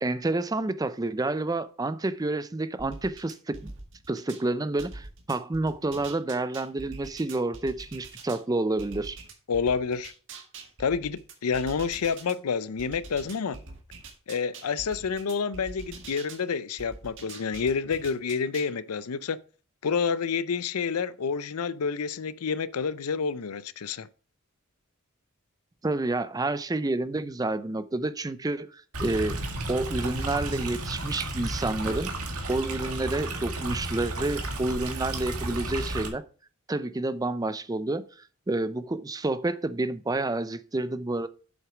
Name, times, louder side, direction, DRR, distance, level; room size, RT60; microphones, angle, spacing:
voice 1, 0.0-3.7 4.1-9.2 25.8-29.4 29.7-32.1 32.5-36.2 36.7-38.1 38.5-41.3, right 2 dB, 15° right, 0.5 m, -29 dB
sound 1, 2.8-4.4 4.8-8.4 8.8-12.3 12.8-16.4 16.8-18.7, right 3 dB, 60° right, 1.8 m, -44 dB
voice 2, 9.5-10.1 10.8-13.6 14.3-19.4 19.8-24.1, left 5 dB, 90° left, 0.5 m, -29 dB
Stream, 28.9-36.1, right 2 dB, 90° right, 1.8 m, -33 dB
7.9 x 6.1 x 4.9 m
head